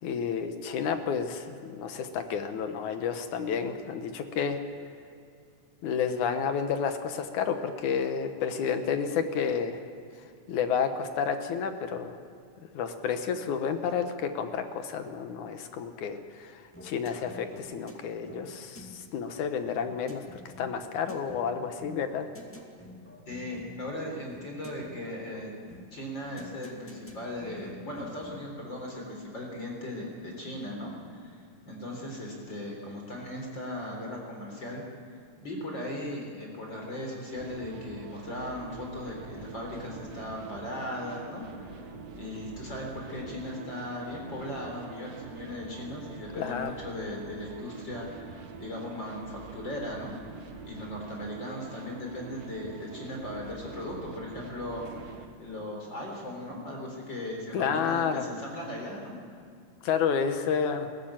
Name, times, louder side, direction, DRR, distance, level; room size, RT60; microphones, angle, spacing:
voice 1, 0.0-4.6 5.8-9.8 10.5-12.2 12.7-22.3 46.4-46.8 57.5-58.3 59.8-60.9, left 6 dB, 70° left, 8 dB, 2.5 m, -30 dB
sound 1, 16.7-28.5, left 1 dB, 5° left, 1.5 m, -49 dB
voice 2, 23.3-25.5 25.9-31.4 31.6-34.8 35.4-41.7 42.1-50.4 50.6-59.1, left 1 dB, 35° left, 0 dB, 4.4 m, -38 dB
sound 2, 37.3-55.3, right 5 dB, 55° right, 2.2 m, -45 dB
21.5 x 15.5 x 8.9 m, 2.3 s
omnidirectional pair, 3.7 m